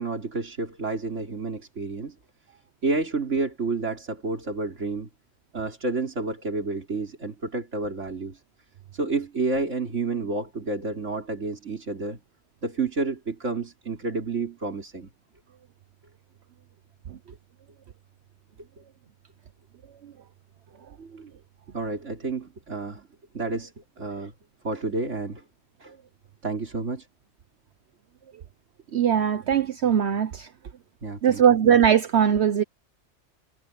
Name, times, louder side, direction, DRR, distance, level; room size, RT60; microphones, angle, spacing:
voice 1, 0.0-2.2 2.8-5.1 5.5-8.4 8.9-12.2 12.6-15.1 21.7-23.1 23.3-23.7 24.0-24.3 24.6-25.4 25.8-25.9 26.4-27.1 31.0-31.4, right 3 dB, 85° right, 3.9 m, -30 dB
voice 2, 28.9-30.5 31.2-32.6, right 8 dB, 65° right, 1.1 m, -20 dB
omnidirectional pair, 1.2 m